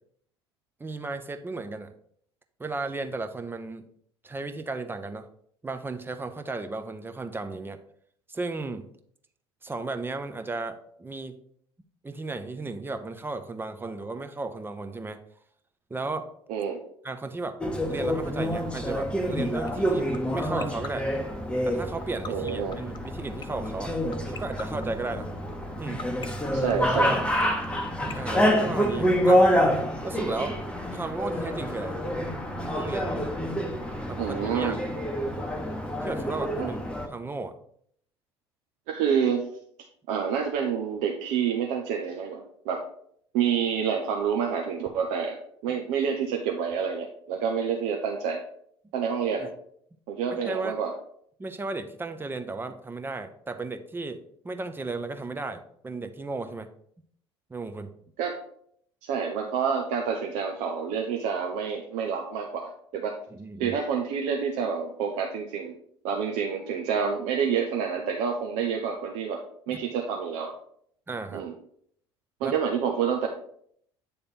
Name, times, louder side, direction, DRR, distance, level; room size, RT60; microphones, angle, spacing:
voice 1, 0.8-1.9 2.6-3.9 4.2-5.3 5.6-7.8 8.3-8.9 9.6-11.4 12.0-15.2 15.9-16.3 17.0-17.6 17.9-21.1 21.6-23.9 24.3-25.3 25.8-26.0 28.1-29.5 30.0-30.6 30.9-31.9 32.6-33.2 34.1-34.8 36.0-36.8 37.1-37.5 45.7-45.8 49.4-49.5 50.3-50.8 51.4-56.7 57.5-57.9 63.3-63.8 69.7-69.8 71.1-71.5 72.4-72.6, right 3 dB, 15° right, 8 dB, 0.7 m, -35 dB
sound 1, 17.6-37.1, equal, 10° left, 1.0 m, -27 dB
sound 2, 19.7-29.3, left 6 dB, 35° left, 0.7 m, -39 dB
voice 2, 22.3-22.8 26.5-27.2 28.3-28.6 32.7-32.9 34.2-34.8 36.6-36.7 38.9-39.5 40.1-42.8 43.3-45.4 45.6-48.4 48.9-49.5 50.1-50.9 58.2-58.3 59.0-63.1 63.6-65.7 66.0-69.4 69.7-70.5 71.3-71.5 72.4-73.3, right 7 dB, 60° right, 2 dB, 0.8 m, -28 dB
8.6 x 3.4 x 4.3 m, 0.65 s
figure-of-eight pair, 60°, 14 cm